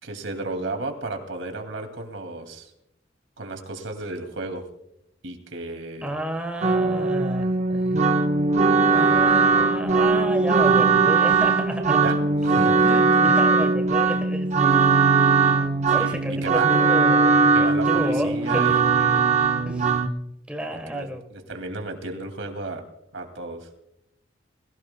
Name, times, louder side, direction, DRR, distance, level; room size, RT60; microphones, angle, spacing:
voice 1, 0.0-2.7 3.4-4.6 5.2-6.1 12.0-12.2 12.4-12.7 15.9-16.2 16.4-16.7 17.5-19.3 20.9-22.8 23.1-23.7, right 2 dB, 80° right, 5 dB, 2.5 m, -33 dB
voice 2, 6.0-8.0 8.9-12.0 12.5-14.9 15.5-18.8 19.6-20.0 20.5-21.2, equal, 5° right, 4 dB, 1.2 m, -31 dB
sound 1, 6.6-20.1, right 4 dB, 35° right, 0.8 m, -20 dB
22.0 x 16.0 x 2.2 m, 0.80 s
head